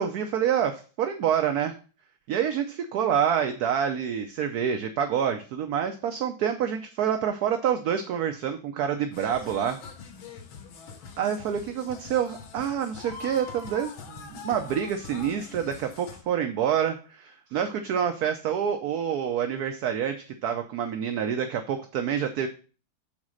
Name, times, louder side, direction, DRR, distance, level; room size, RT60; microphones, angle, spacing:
voice 1, 0.0-1.8 2.3-9.8 11.2-22.5, right 8 dB, 65° right, 7 dB, 1.0 m, -27 dB
sound 1, 9.1-16.2, left 5 dB, 85° left, 1.9 m, -43 dB
7.4 x 4.1 x 6.3 m, 0.37 s
omnidirectional pair, 2.2 m